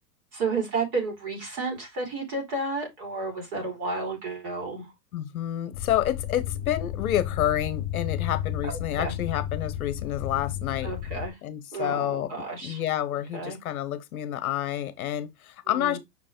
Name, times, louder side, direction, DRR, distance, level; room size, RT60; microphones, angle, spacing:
voice 1, 0.3-4.9 8.6-9.2 10.8-11.4 11.7-12.8 13.3-13.6 15.7-16.0, right 3 dB, 35° right, 3.7 m, -32 dB
voice 2, 5.1-10.9 11.4-12.3 12.6-16.0, left 12 dB, 55° left, 1.0 m, -29 dB
sound 1, 5.7-11.3, left 11 dB, 40° left, 0.7 m, -32 dB
6.1 x 4.7 x 3.6 m
supercardioid pair, 170°, 50 cm